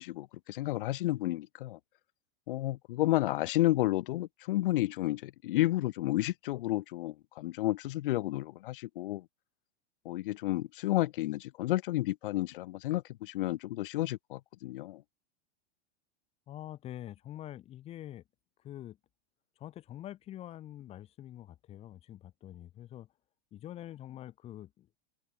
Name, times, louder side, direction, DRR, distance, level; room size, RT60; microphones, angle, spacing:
voice 1, 0.0-1.8 2.5-9.3 10.0-15.0, left 16 dB, 50° left, 0.7 m, -31 dB
voice 2, 16.5-18.2 18.6-19.0 19.6-23.1 23.5-24.9, left 12 dB, 20° left, 2.3 m, -45 dB
supercardioid pair, 180°, 33 cm